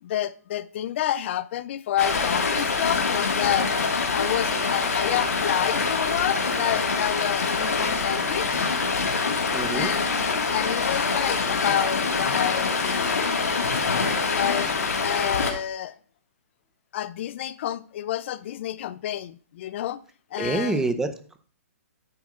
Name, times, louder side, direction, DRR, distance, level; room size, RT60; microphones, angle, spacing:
voice 1, 0.0-3.7 4.1-8.6 9.7-10.1 10.5-13.1 14.3-14.7 15.0-15.9 16.9-20.0 20.3-20.9, left 11 dB, 50° left, 0.5 m, -29 dB
Stream, 2.0-15.5, left 4 dB, 85° left, 1.7 m, -25 dB
voice 2, 9.5-10.0 20.4-21.4, right 3 dB, 5° right, 0.7 m, -27 dB
9.5 x 8.1 x 2.5 m
hypercardioid pair, 140°, 8 cm